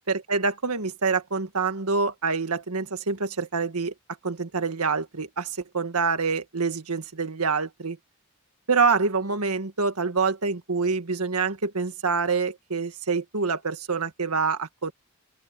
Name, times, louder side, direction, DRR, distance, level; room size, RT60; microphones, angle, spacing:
voice 1, 0.1-3.9 4.2-8.0 8.7-14.9, right 4 dB, 90° right, 1.7 m, -26 dB
open air
head